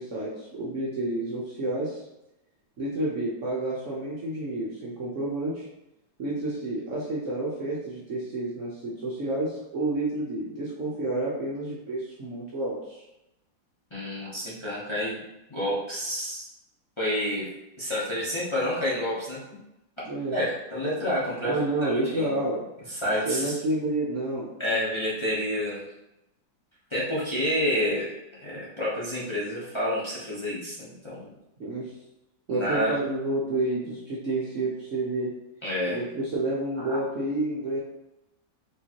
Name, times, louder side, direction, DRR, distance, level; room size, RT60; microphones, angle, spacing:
voice 1, 0.0-2.0 2.8-5.7 6.2-13.0 20.1-20.4 21.4-22.6 23.3-24.5 31.6-32.0 32.5-35.4 35.9-37.8, right 2 dB, 60° right, -6 dB, 0.8 m, -29 dB
voice 2, 13.9-15.2 15.5-16.5 17.0-17.5 17.8-19.4 20.3-22.3 22.9-23.5 24.6-25.8 26.9-28.1 28.4-31.3 32.5-33.0 35.6-36.0 36.8-37.0, equal, 40° left, -8 dB, 0.4 m, -29 dB
4.6 x 3.0 x 2.9 m, 0.91 s
omnidirectional pair, 2.1 m